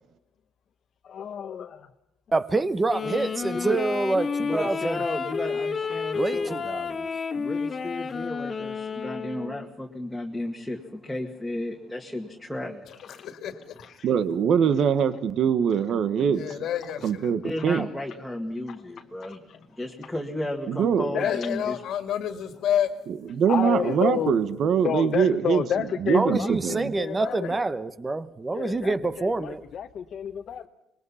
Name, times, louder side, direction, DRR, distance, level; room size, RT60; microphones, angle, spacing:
voice 1, 1.0-1.9 5.8-6.2 13.0-13.3 13.8-14.1 17.6-17.7 18.7-19.7 20.0-20.1 21.1-21.8 23.5-24.4 24.8-27.6 28.5-30.7, left 8 dB, 50° left, 1.0 m, -31 dB
voice 2, 2.3-5.0 6.1-7.1 26.1-29.6, right 3 dB, 15° right, 1.0 m, -27 dB
Wind instrument woodwind instrument, 2.9-9.7, left 5 dB, 30° left, 1.7 m, -31 dB
voice 3, 4.4-6.6 7.3-13.0 17.4-19.4 19.8-21.8, left 1 dB, 5° left, 2.0 m, -33 dB
voice 4, 13.2-13.9 16.3-17.4 21.2-22.9 27.1-27.5, left 10 dB, 65° left, 2.0 m, -29 dB
voice 5, 14.0-16.4 17.0-17.9 20.7-21.1 23.3-25.6 26.0-26.9, right 7 dB, 55° right, 1.2 m, -23 dB
25.5 x 21.5 x 5.7 m
cardioid pair, 145°, 0 cm